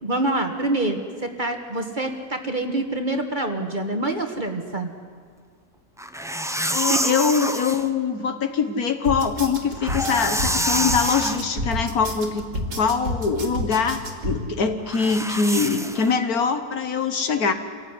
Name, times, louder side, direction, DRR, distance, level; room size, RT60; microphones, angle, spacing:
voice 1, 0.0-4.9 6.6-6.7, right 2 dB, 30° right, 5 dB, 1.7 m, -26 dB
sound 1, 6.0-7.9 9.7-11.4 14.9-16.1, equal, 5° right, 0.5 m, -26 dB
voice 2, 6.7-12.4 12.8-17.5, left 5 dB, 65° left, 8 dB, 1.8 m, -23 dB
sound 2, 9.0-14.4, equal, 80° right, 3.4 m, -30 dB
26.0 x 16.5 x 9.8 m, 2.1 s
omnidirectional pair, 1.7 m